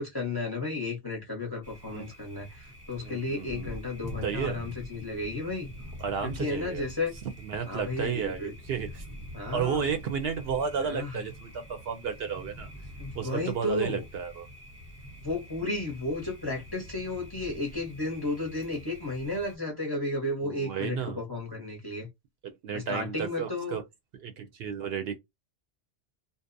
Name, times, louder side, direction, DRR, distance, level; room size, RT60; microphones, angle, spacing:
voice 1, 0.0-5.7 6.2-7.1 7.7-8.5 9.3-9.9 10.8-11.1 13.0-14.0 15.2-22.1 22.7-23.8, left 2 dB, 25° left, 0.6 m, -33 dB
Thunder, 1.6-19.6, equal, 15° right, 0.6 m, -45 dB
voice 2, 3.0-3.7 4.2-4.6 6.0-6.8 7.4-9.0 9.5-12.7 13.1-14.5 20.4-21.2 22.4-23.8 24.2-25.2, right 7 dB, 65° right, 0.7 m, -32 dB
2.7 x 2.0 x 2.5 m
omnidirectional pair, 1.2 m